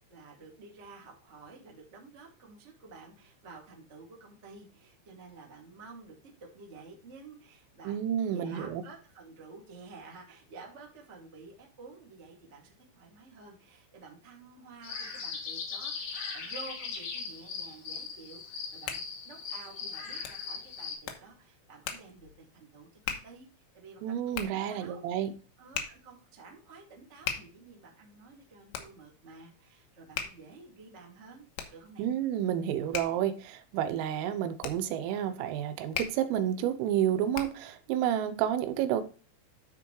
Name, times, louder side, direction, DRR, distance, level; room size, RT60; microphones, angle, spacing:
voice 1, 0.1-8.0 8.2-25.0 25.6-32.1, right 4 dB, 55° right, 0.7 m, -51 dB
voice 2, 7.9-8.8 24.0-25.3 32.0-39.0, right 10 dB, 85° right, 3.4 m, -30 dB
sound 1, 14.8-20.9, left 5 dB, 50° left, 4.0 m, -39 dB
Hands, 18.4-37.8, left 8 dB, 75° left, 3.2 m, -42 dB
12.5 x 4.8 x 3.2 m
omnidirectional pair, 5.9 m